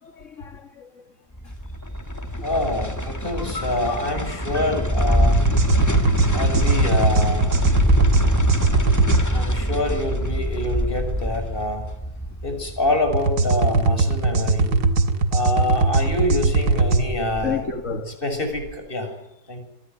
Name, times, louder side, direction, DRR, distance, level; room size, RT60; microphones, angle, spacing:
voice 1, 0.0-1.0 1.4-1.6 2.4-2.5 17.4-18.2, left 5 dB, 50° left, 2.1 m, -31 dB
sound 1, 1.3-14.5 14.8-14.9, equal, 10° left, 2.0 m, -24 dB
sound 2, 2.3-11.7 12.0-12.1 12.6-12.9 13.2-13.3 13.8-18.7, equal, 30° right, 7.0 m, -34 dB
voice 2, 2.4-5.5 6.3-7.5 9.3-11.8 12.4-14.7 15.3-17.6 18.2-19.1 19.5-19.6, left 1 dB, 30° left, 6.8 m, -26 dB
sound 3, 5.3-9.2 13.1-17.0, right 3 dB, 75° right, 2.3 m, -20 dB
27.0 x 20.0 x 9.2 m
omnidirectional pair, 1.7 m